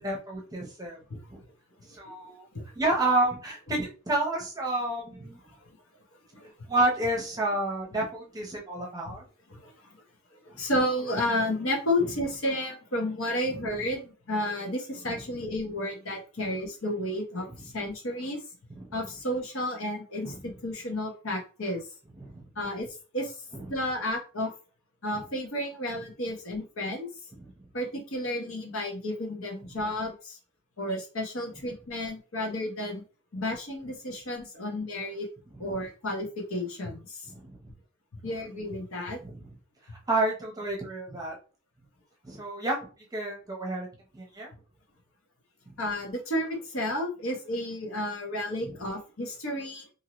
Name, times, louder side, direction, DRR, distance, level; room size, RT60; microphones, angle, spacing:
voice 1, 0.0-1.0 1.3-1.4 1.9-2.5 2.8-5.4 6.7-9.2 12.0-12.1 13.5-13.7 15.0-15.2 17.5-17.7 18.8-19.0 20.2-20.5 22.2-22.4 23.5-23.8 35.5-35.8 37.3-37.5 39.2-39.5 40.1-41.4 42.2-42.8 43.1-43.9 44.1-44.5 48.6-48.8, right 2 dB, 20° right, -1 dB, 0.8 m, -30 dB
voice 2, 10.4-18.4 18.9-21.8 22.6-23.3 23.7-24.5 25.0-27.1 27.7-30.4 30.8-33.0 33.3-35.3 35.6-37.3 38.2-39.2 45.8-49.9, left 1 dB, 70° left, 1 dB, 1.1 m, -32 dB
2.8 x 2.7 x 3.0 m, 0.36 s
head